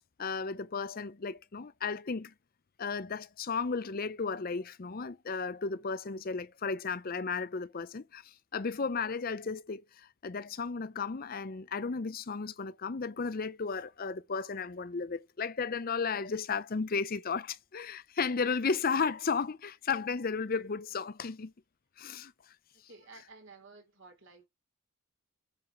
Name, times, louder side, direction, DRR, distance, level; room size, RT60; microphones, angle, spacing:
voice 1, 0.2-2.3 2.8-21.5 22.0-22.6, left 5 dB, 40° left, 0.5 m, -34 dB
voice 2, 22.7-24.5, right 3 dB, 55° right, 4.0 m, -54 dB
8.6 x 4.9 x 5.7 m
head